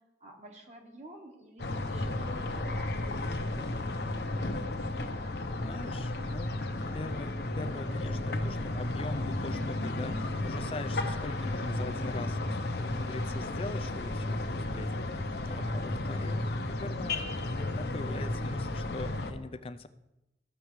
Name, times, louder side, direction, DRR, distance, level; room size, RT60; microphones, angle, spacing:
voice 1, 0.2-4.1, right 1 dB, 40° right, 2 dB, 1.4 m, -52 dB
sound 1, 1.6-19.3, left 2 dB, 65° left, 0.8 m, -33 dB
voice 2, 5.6-6.6 6.9-15.2 15.5-19.9, left 2 dB, 30° left, 11 dB, 0.4 m, -42 dB
14.5 x 6.8 x 3.2 m, 0.96 s
head